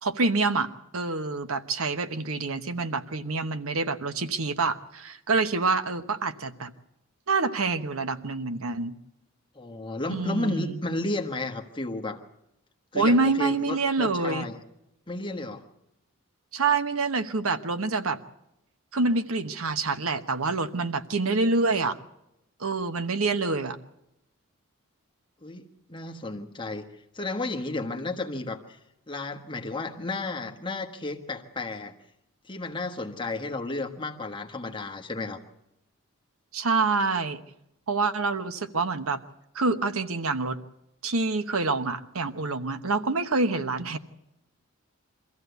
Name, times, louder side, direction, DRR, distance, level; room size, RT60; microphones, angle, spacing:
voice 1, 0.0-6.7 7.3-8.9 10.1-10.8 12.9-14.5 16.5-18.2 18.9-22.0 22.6-23.8 36.5-37.4 37.9-39.2 39.5-40.6 41.0-44.0, right 3 dB, 80° right, 10 dB, 1.0 m, -26 dB
voice 2, 9.5-12.2 12.9-14.6 15.1-15.6 25.4-25.6 25.9-28.8 29.1-31.9 32.4-35.4, left 2 dB, 20° left, 3 dB, 1.4 m, -33 dB
23.5 x 14.5 x 8.1 m, 0.84 s
head